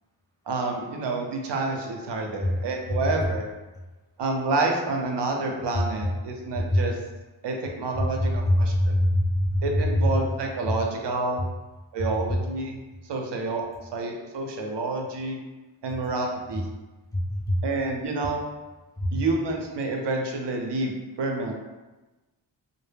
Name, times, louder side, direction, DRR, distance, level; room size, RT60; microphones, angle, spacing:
voice 1, 0.5-3.5 4.2-6.9 7.4-9.0 9.6-11.4 11.9-12.8 13.0-13.6 13.9-15.4 15.8-16.6 17.6-18.4 19.1-21.5, right 3 dB, 60° right, 2 dB, 0.6 m, -28 dB
voice 2, 8.5-9.7 17.1-17.6 19.0-19.1, left 1 dB, 10° left, -3 dB, 0.3 m, -23 dB
2.0 x 2.0 x 3.3 m, 1.1 s
cardioid pair, 60°, 47 cm